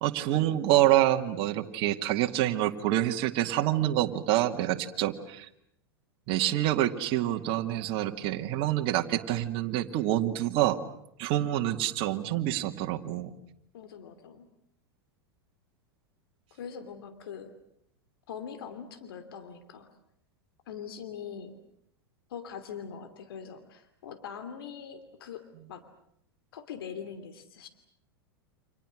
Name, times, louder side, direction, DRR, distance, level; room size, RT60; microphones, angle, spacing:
voice 1, 0.0-5.5 6.3-10.8 11.2-13.3, right 13 dB, 50° right, 4 dB, 2.2 m, -27 dB
voice 2, 13.7-14.5 16.5-17.5 18.3-19.9 20.7-21.6 22.3-25.8 26.5-27.7, left 7 dB, 70° left, 8 dB, 2.9 m, -42 dB
30.0 x 26.5 x 6.4 m, 0.74 s
hypercardioid pair, 100°, 13 cm